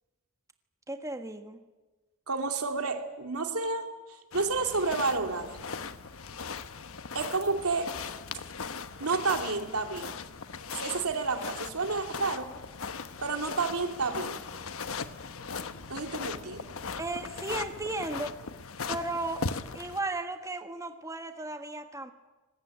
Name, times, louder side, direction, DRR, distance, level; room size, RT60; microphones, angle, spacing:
voice 1, 0.9-1.6 17.0-18.4 18.9-19.5 19.7-22.1, right 2 dB, 15° right, 6 dB, 1.5 m, -35 dB
voice 2, 2.3-5.6 7.1-7.9 9.0-10.2 10.8-12.5 13.2-14.5 15.9-16.8, right 4 dB, 90° right, 5 dB, 2.9 m, -30 dB
sound 1, 4.3-20.0, left 5 dB, 65° left, 1.1 m, -39 dB
25.0 x 20.0 x 9.2 m, 1.2 s
head